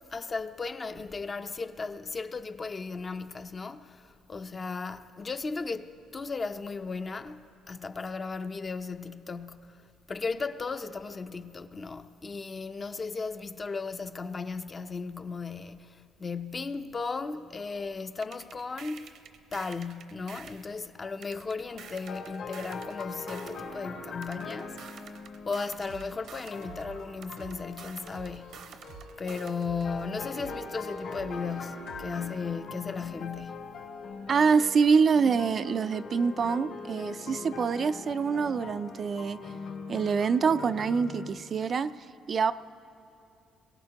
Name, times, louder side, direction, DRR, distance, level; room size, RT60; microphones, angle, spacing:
voice 1, 0.1-19.2 19.5-25.1 25.5-28.7 29.2-33.8, left 4 dB, 30° left, 0.5 m, -36 dB
sound 1, 18.2-20.7 21.2-23.7 24.2-26.7 27.2-29.7, right 7 dB, 70° right, 0.8 m, -48 dB
sound 2, 21.7-41.3, left 4 dB, 70° left, 2.7 m, -42 dB
sound 3, 25.8-32.4, right 5 dB, 85° right, 1.3 m, -51 dB
voice 2, 34.3-39.4 39.9-41.9 42.3-42.5, right 5 dB, 45° right, 0.3 m, -25 dB
22.5 x 17.0 x 2.9 m
cardioid pair, 110°, 0 cm